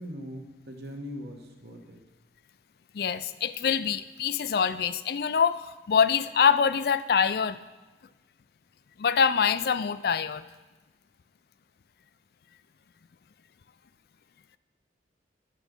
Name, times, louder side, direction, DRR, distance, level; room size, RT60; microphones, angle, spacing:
voice 1, 0.0-2.0, equal, 65° right, 3 dB, 1.2 m, -40 dB
voice 2, 2.9-7.6 9.0-10.4, left 6 dB, 55° left, 14 dB, 0.3 m, -25 dB
10.5 x 6.0 x 5.2 m, 1.1 s
head